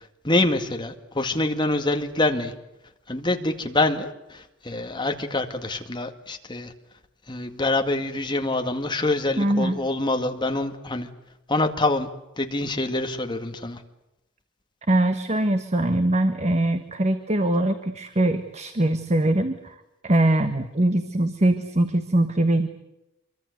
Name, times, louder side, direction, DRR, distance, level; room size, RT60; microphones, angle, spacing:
voice 1, 0.2-2.5 3.1-6.7 7.3-11.1 11.5-12.1 12.4-13.8, left 2 dB, 25° left, 5 dB, 2.1 m, -25 dB
voice 2, 9.4-9.8 14.9-19.7 20.0-22.7, right 1 dB, 35° right, 9 dB, 1.4 m, -22 dB
26.0 x 23.5 x 8.1 m, 0.91 s
head